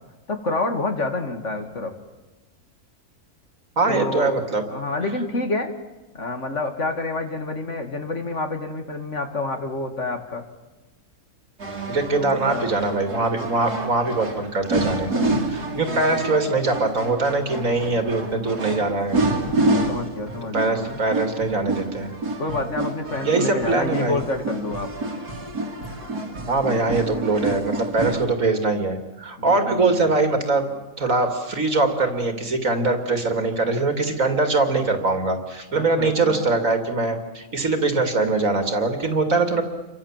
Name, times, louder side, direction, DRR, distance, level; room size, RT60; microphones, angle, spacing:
voice 1, 0.3-1.9 3.9-4.4 4.7-5.7 6.1-10.4 12.1-12.7 15.7-16.6 19.4-21.0 22.4-24.9 27.1-27.3 29.4-30.1 35.8-36.4, left 2 dB, 50° left, 5 dB, 2.6 m, -28 dB
voice 2, 3.8-4.6 11.9-19.2 20.5-22.1 23.2-24.2 26.5-30.7 31.0-39.6, right 3 dB, 55° right, 6 dB, 2.9 m, -22 dB
sound 1, 11.6-28.2, right 2 dB, 85° right, 3.5 m, -28 dB
29.0 x 24.0 x 7.4 m, 1.1 s
omnidirectional pair, 1.6 m